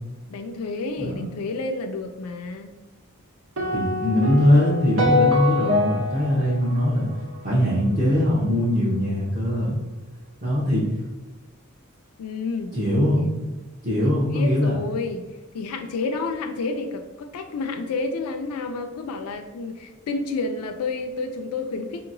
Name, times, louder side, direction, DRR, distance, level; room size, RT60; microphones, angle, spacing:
voice 1, 0.3-2.7 12.2-12.7 13.1-13.4 14.0-15.3 15.5-22.1, left 3 dB, 85° left, 5 dB, 0.4 m, -30 dB
sound 1, 3.6-7.9, left 2 dB, 75° right, 0.7 m, -25 dB
voice 2, 3.7-7.1 7.4-9.8 10.4-10.9 12.7-13.2 13.8-14.7, left 1 dB, 35° right, -8 dB, 0.7 m, -21 dB
4.5 x 2.8 x 2.5 m, 1.1 s
head